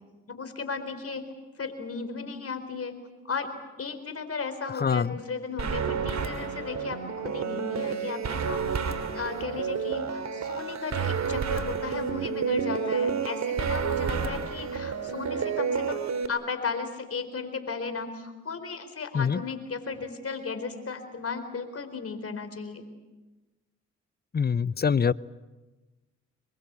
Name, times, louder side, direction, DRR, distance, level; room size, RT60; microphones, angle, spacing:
voice 1, 0.3-1.2 1.6-2.9 3.2-3.5 3.8-16.0 16.3-22.9, left 5 dB, 50° left, 8 dB, 4.4 m, -35 dB
voice 2, 4.8-5.1 19.1-19.4 24.3-25.1, left 6 dB, 30° left, 19 dB, 0.8 m, -24 dB
sound 1, 5.6-16.3, right 6 dB, 60° right, 2.7 m, -30 dB
25.5 x 22.5 x 8.4 m, 1.2 s
supercardioid pair, 50°, 31 cm